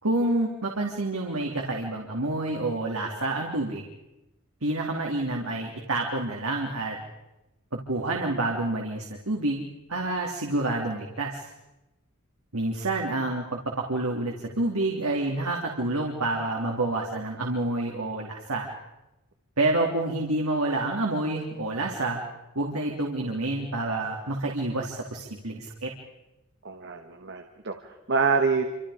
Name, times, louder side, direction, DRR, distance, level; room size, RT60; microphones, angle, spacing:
voice 1, 0.0-3.8 4.6-7.0 7.7-11.5 12.5-18.7 19.6-22.2 22.5-25.9, right 2 dB, 85° right, 0 dB, 3.1 m, -28 dB
voice 2, 26.6-28.6, right 4 dB, 55° right, 5 dB, 1.8 m, -26 dB
28.0 x 27.0 x 5.1 m, 0.96 s
head